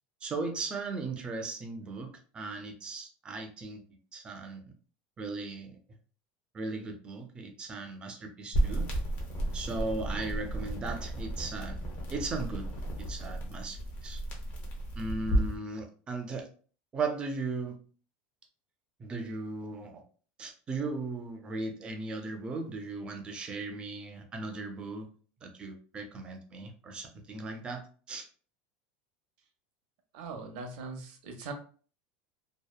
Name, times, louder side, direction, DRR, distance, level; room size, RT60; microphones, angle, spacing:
voice 1, 0.2-3.8 4.1-4.6 5.2-5.8 6.5-8.9 9.5-11.8 12.1-14.2 15.0-16.5 16.9-17.8 19.0-20.0 20.4-25.1 25.4-28.3, right 3 dB, 20° right, 4 dB, 0.4 m, -37 dB
sound 1, 8.5-15.6, right 1 dB, 40° left, 0.7 m, -33 dB
voice 2, 30.1-31.5, right 4 dB, 70° right, 5 dB, 0.7 m, -41 dB
2.7 x 2.0 x 2.2 m, 0.41 s
supercardioid pair, 155°, 5 cm